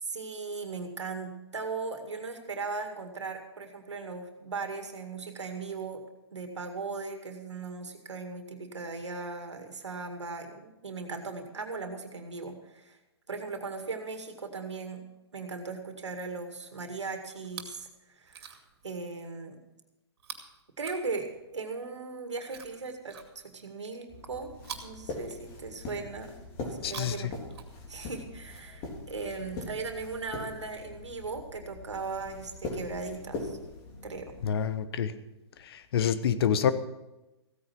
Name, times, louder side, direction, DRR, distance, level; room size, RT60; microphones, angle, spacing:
voice 1, 0.0-6.0 6.3-13.0 13.3-15.0 15.3-18.6 18.8-19.6 20.8-24.5 24.8-26.3 26.6-27.4 27.9-33.6 34.0-34.4, right 4 dB, 85° right, 5 dB, 2.1 m, -38 dB
Chewing mastication, 17.4-17.9 18.2-18.8 20.2-21.6 22.4-23.7 24.6-25.9 26.7-28.1 29.1-29.2, right 7 dB, 60° right, 2.4 m, -47 dB
sound 1, 24.1-34.5, left 2 dB, 35° left, 3.4 m, -42 dB
voice 2, 26.8-27.3 34.4-35.1 35.6-36.7, left 8 dB, 60° left, 13 dB, 1.1 m, -27 dB
15.5 x 9.4 x 6.0 m, 0.98 s
hypercardioid pair, 125°, 15 cm